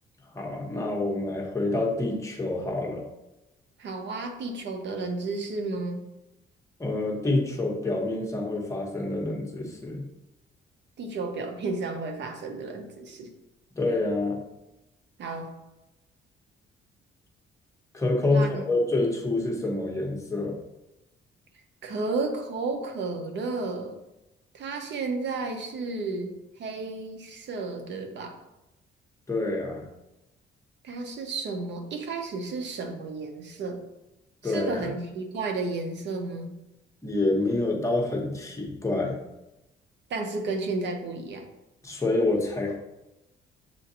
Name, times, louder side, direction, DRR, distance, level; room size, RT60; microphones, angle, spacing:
voice 1, 0.3-3.0 6.8-10.0 13.7-14.4 17.9-20.5 29.3-29.9 34.4-34.9 37.0-39.2 41.8-42.8, left 2 dB, 15° left, -1 dB, 1.1 m, -27 dB
voice 2, 3.8-6.1 11.0-13.3 15.2-15.5 18.3-18.6 21.8-24.0 24.5-28.3 30.8-33.8 34.4-36.6 40.1-41.5, right 3 dB, 65° right, 5 dB, 0.7 m, -32 dB
7.1 x 2.5 x 2.7 m, 0.94 s
cardioid pair, 90°, 20 cm